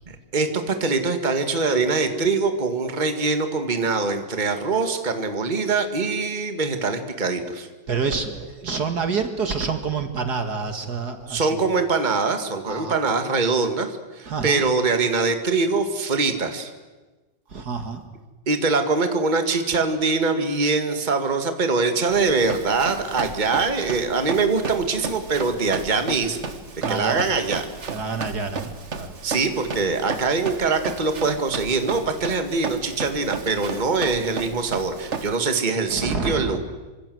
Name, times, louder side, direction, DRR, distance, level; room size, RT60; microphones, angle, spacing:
voice 1, 0.3-7.7 11.3-16.7 18.5-26.5 26.9-27.6 29.2-36.6, right 4 dB, 25° right, 7 dB, 2.0 m, -23 dB
voice 2, 7.9-11.5 12.6-13.0 14.3-14.6 17.5-18.0 26.8-27.2 27.9-29.2 35.9-36.6, right 5 dB, 60° right, 7 dB, 2.4 m, -28 dB
Run, 22.1-35.3, right 4 dB, 40° right, 1.7 m, -34 dB
27.0 x 25.5 x 7.9 m, 1.2 s
omnidirectional pair, 2.0 m